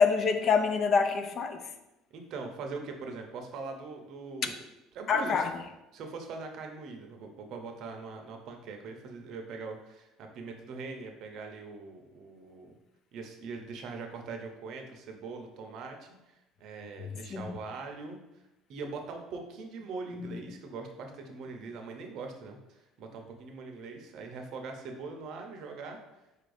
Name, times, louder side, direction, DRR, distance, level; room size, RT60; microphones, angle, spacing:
voice 1, 0.0-1.7 5.1-5.6 17.3-17.6 20.1-20.4, left 5 dB, 35° left, 8 dB, 0.3 m, -26 dB
voice 2, 2.1-4.6 4.9-5.4 5.9-12.8 13.1-16.1 16.6-18.2 18.7-26.0, right 4 dB, 50° right, 4 dB, 0.6 m, -42 dB
4.2 x 2.6 x 4.8 m, 0.95 s
cardioid pair, 155°, 0 cm